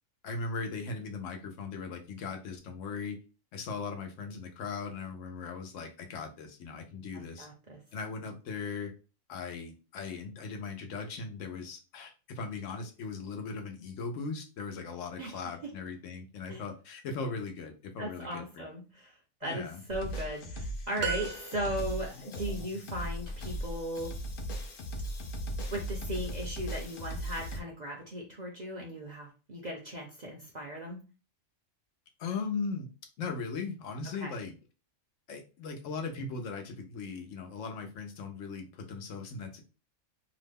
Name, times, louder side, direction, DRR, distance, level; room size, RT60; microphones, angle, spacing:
voice 1, 0.2-3.2 3.5-7.5 7.9-8.9 9.3-18.6 19.4-19.8 32.2-32.9 33.2-34.5 35.3-39.6, left 4 dB, 80° left, 4 dB, 1.0 m, -38 dB
voice 2, 7.1-7.8 15.2-15.3 15.6-15.7 16.5-16.6 18.0-19.1 19.4-24.1 25.7-31.0 34.1-34.3, equal, 50° right, 0 dB, 0.5 m, -37 dB
sound 1, 19.9-27.6, equal, 55° left, 0.6 m, -38 dB
sound 2, 21.0-22.1, right 6 dB, 65° right, 0.9 m, -36 dB
2.9 x 2.1 x 3.3 m, 0.33 s
omnidirectional pair, 1.3 m